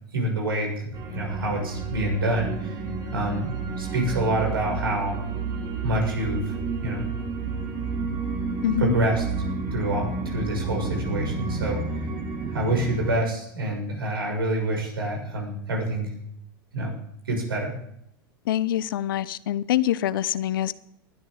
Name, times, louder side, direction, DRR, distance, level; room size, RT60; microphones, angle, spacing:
voice 1, 0.1-2.8 3.1-5.2 5.8-6.5 6.8-7.0 8.8-9.2 9.7-11.8 12.5-16.1 16.7-16.9 17.3-17.8, right 1 dB, 85° right, 6.5 m, -27 dB
sound 1, 0.9-13.2, right 4 dB, 40° right, 4.2 m, -30 dB
voice 2, 8.6-8.9 18.5-20.7, left 12 dB, 70° left, 0.8 m, -25 dB
20.0 x 12.5 x 3.8 m
hypercardioid pair, 95°, 12 cm